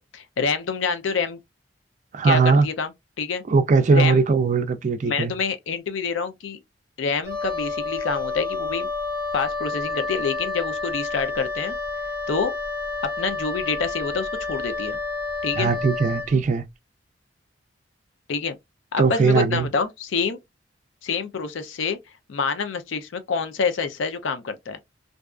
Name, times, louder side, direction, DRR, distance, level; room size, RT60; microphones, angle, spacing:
voice 1, 0.1-1.4 2.2-2.9 3.2-3.4 3.9-4.2 5.0-6.6 7.0-8.9 9.3-11.7 12.3-12.6 13.0-15.0 15.4-15.7 18.3-18.6 18.9-20.4 21.0-22.0 22.3-24.8, left 5 dB, 85° left, 0.5 m, -27 dB
voice 2, 2.1-2.7 3.5-5.3 15.6-16.6 19.0-19.7, right 4 dB, 40° right, 0.4 m, -19 dB
Wind instrument woodwind instrument, 7.2-16.4, left 3 dB, 15° right, 0.8 m, -29 dB
2.6 x 2.3 x 2.3 m
head